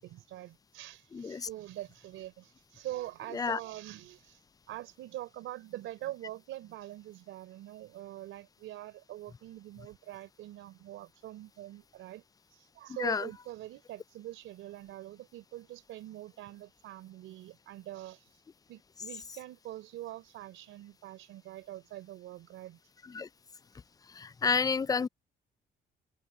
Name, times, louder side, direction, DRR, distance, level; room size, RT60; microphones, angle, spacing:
voice 1, 0.0-4.4 4.7-12.2 12.5-18.3 18.7-22.8, right 14 dB, 90° right, 3.9 m, -44 dB
voice 2, 1.1-1.5 3.4-3.6 13.0-13.2 23.1-23.3 24.2-25.1, left 5 dB, 20° left, 0.4 m, -29 dB
cardioid pair, 90°, 20 cm